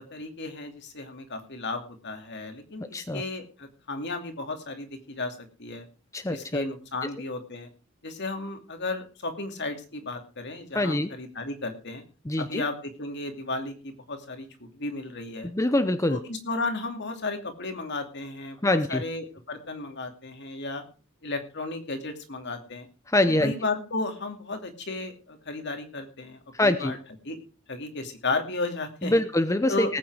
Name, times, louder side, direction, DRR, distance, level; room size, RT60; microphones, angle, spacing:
voice 1, 0.0-5.9 6.3-7.7 8.0-12.0 12.4-15.5 16.1-20.8 21.2-22.9 23.4-27.0 27.2-27.4 27.7-29.2 29.7-30.0, left 2 dB, 55° left, 6 dB, 2.7 m, -34 dB
voice 2, 2.9-3.2 6.1-6.6 10.7-11.1 12.3-12.6 15.5-16.2 18.6-19.0 23.1-23.5 26.5-26.9 29.0-30.0, left 1 dB, 15° left, 11 dB, 0.7 m, -24 dB
18.5 x 9.0 x 4.8 m, 0.34 s
head